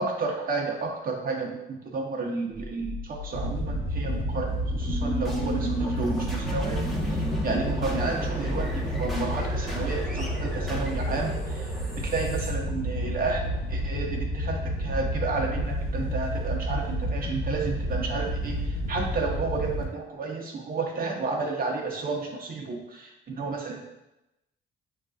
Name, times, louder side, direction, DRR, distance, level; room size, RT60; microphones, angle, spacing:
voice 1, 0.0-23.8, right 4 dB, 45° right, -1 dB, 1.0 m, -32 dB
sound 1, 2.5-13.6, right 1 dB, ahead, 0.9 m, -34 dB
Wind / Boat Water vehicle, 3.3-19.8, equal, 85° left, 0.8 m, -30 dB
7.3 x 2.6 x 2.4 m, 0.93 s
cardioid pair, 90°, 20 cm